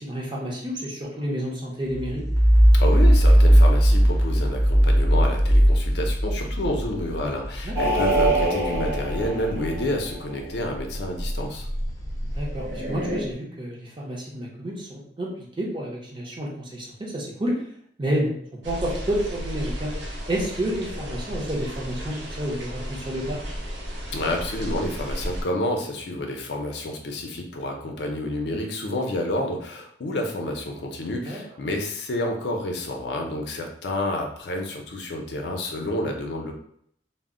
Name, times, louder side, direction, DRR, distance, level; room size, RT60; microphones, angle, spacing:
voice 1, 0.0-2.2 7.6-8.1 12.3-17.7 18.0-18.3 18.6-19.9 20.3-23.4 31.3-31.4, equal, 25° right, -3 dB, 0.6 m, -30 dB
sound 1, 1.9-10.1 10.5-13.1, equal, 15° left, 0.5 m, -20 dB
voice 2, 2.7-11.7 24.1-36.5, left 1 dB, 65° left, 2 dB, 0.5 m, -29 dB
sound 2, 7.7-10.4 12.5-13.2, right 2 dB, 60° right, 0.9 m, -26 dB
sound 3, 18.6-25.4, equal, 80° right, 0.6 m, -34 dB
2.0 x 2.0 x 3.6 m, 0.67 s
head